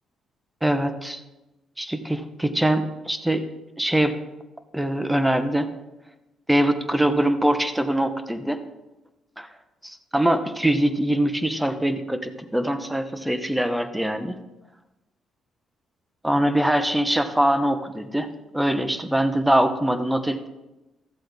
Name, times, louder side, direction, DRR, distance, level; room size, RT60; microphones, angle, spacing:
voice 1, 0.6-1.2 1.8-3.4 3.8-4.2 4.7-5.7 6.5-8.6 9.4-9.5 9.8-14.4 16.2-18.3 18.5-20.5, right 1 dB, 5° right, 9 dB, 0.9 m, -23 dB
14.0 x 7.7 x 3.5 m, 1.0 s
cardioid pair, 90°, 0 cm